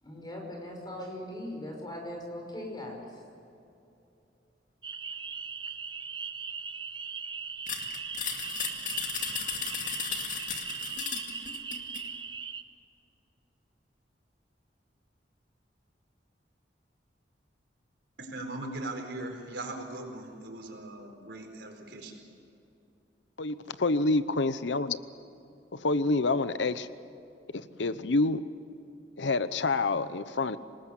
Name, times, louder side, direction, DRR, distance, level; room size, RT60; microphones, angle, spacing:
voice 1, 0.0-3.1 10.0-10.1, left 1 dB, 25° left, 1 dB, 5.7 m, -40 dB
sound 1, 4.8-12.6, right 6 dB, 25° right, 0.9 m, -39 dB
sound 2, 7.7-12.1, left 6 dB, 45° left, 2.4 m, -35 dB
voice 2, 18.2-22.2, right 2 dB, 70° right, 3 dB, 4.5 m, -39 dB
voice 3, 23.4-25.0 25.7-26.9 27.5-28.4 29.2-30.6, left 3 dB, 80° left, 13 dB, 0.9 m, -27 dB
26.0 x 19.5 x 8.2 m, 2.7 s
head